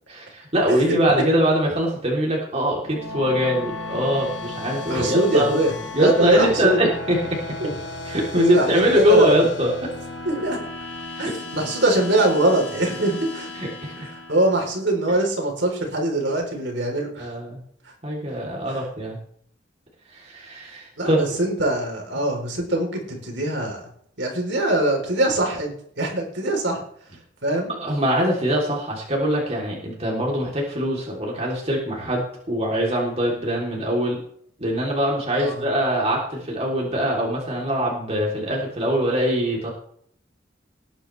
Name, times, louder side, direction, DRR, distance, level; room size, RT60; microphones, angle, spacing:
voice 1, 0.1-5.6 5.9-7.2 8.1-9.9 11.2-11.3 13.6-13.9 17.2-17.6 18.0-19.2 20.1-21.2 27.7-34.2 34.6-39.7, equal, 35° right, -2 dB, 3.4 m, -22 dB
sound 1, 2.7-15.0, left 2 dB, 65° left, 2.6 m, -35 dB
voice 2, 4.9-6.8 7.6-7.7 8.3-9.4 10.3-10.6 11.2-13.5 14.0-17.3 18.7-18.8 21.0-23.8 24.2-26.8 27.4-27.7 35.3-35.6, right 1 dB, 65° right, 2 dB, 4.0 m, -23 dB
19.0 x 9.9 x 3.4 m, 0.63 s
head